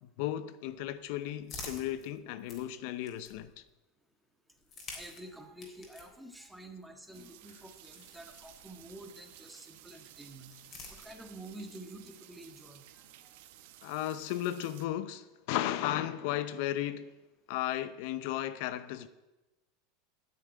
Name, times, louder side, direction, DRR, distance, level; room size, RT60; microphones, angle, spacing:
voice 1, 0.0-3.6 13.8-17.1 17.5-19.1, left 13 dB, 65° left, 0.6 m, -35 dB
sound 1, 0.7-3.7 4.5-9.1 10.1-11.6, left 3 dB, 35° left, 3.7 m, -51 dB
voice 2, 4.9-10.5 11.0-12.8 13.2-13.4, right 1 dB, 5° right, 1.7 m, -49 dB
sound 2, 7.1-14.9, right 13 dB, 70° right, 1.0 m, -55 dB
9.8 x 7.5 x 9.2 m
supercardioid pair, 130°, 0 cm